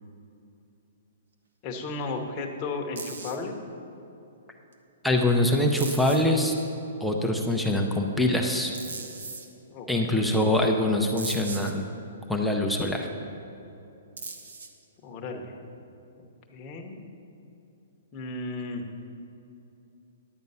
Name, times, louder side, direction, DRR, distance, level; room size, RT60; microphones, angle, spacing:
voice 1, 1.6-3.6 9.7-9.9 10.2-10.5 15.0-15.6 16.5-17.0 18.1-18.8, left 3 dB, 20° left, 1 dB, 0.9 m, -34 dB
sound 1, 3.0-3.4 4.7-4.8 5.8-6.3 8.7-9.5 11.2-11.7 14.2-14.8, right 4 dB, 90° right, 1.2 m, -38 dB
voice 2, 5.0-6.5 7.0-8.7 9.9-11.9 12.3-13.1, left 1 dB, ahead, 1 dB, 0.5 m, -24 dB
10.5 x 8.2 x 5.5 m, 2.8 s
hypercardioid pair, 175°, 0 cm